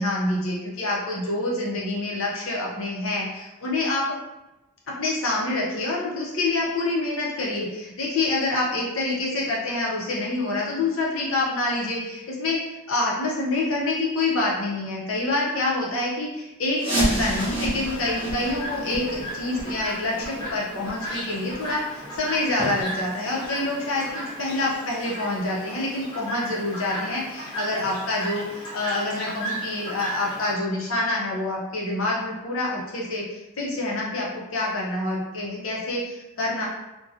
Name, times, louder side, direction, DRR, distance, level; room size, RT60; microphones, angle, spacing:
voice 1, 0.0-4.0 4.9-34.3 34.5-36.7, left 2 dB, 75° left, -3 dB, 0.7 m, -27 dB
sound 1, 16.8-22.4 22.7-22.8 23.4-23.5 24.1-24.2 24.7-24.8, right 1 dB, 25° right, 1.0 m, -30 dB
Chirp tweet, 17.0-30.5, equal, 20° left, 0.6 m, -35 dB
2.6 x 2.2 x 2.4 m, 1.0 s
head